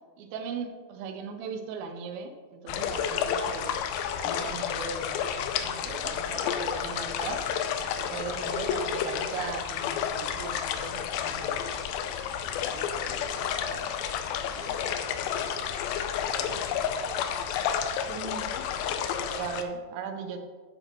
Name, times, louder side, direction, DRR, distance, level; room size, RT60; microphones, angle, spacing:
voice 1, 0.2-3.7 4.2-5.2 5.5-7.4 7.8-11.6 18.1-18.5 19.3-20.4, right 5 dB, 80° right, 6 dB, 2.5 m, -38 dB
sound 1, 2.7-19.6, left 8 dB, 85° left, 2.4 m, -31 dB
voice 2, 12.6-14.0 14.4-17.2, left 1 dB, 65° left, -2 dB, 2.1 m, -46 dB
8.9 x 7.7 x 3.0 m, 1.4 s
omnidirectional pair, 4.3 m